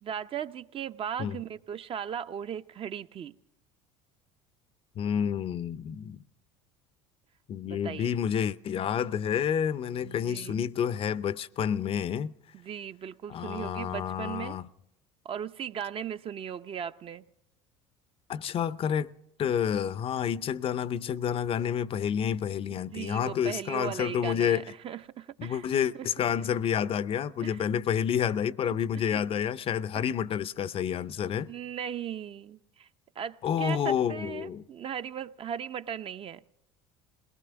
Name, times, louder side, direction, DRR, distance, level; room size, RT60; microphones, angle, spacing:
voice 1, 0.0-3.3 7.6-8.1 10.0-10.6 12.5-14.6 15.2-17.2 22.7-25.7 25.9-26.1 27.4-27.6 28.9-29.2 31.5-32.9 33.2-36.4, right 8 dB, 40° right, 0.6 m, -37 dB
voice 2, 5.0-6.2 7.5-12.3 13.3-14.7 18.3-19.1 19.4-24.6 25.4-31.5 33.4-34.6, left 8 dB, 40° left, 0.5 m, -29 dB
21.0 x 19.0 x 3.5 m
supercardioid pair, 90°, 15 cm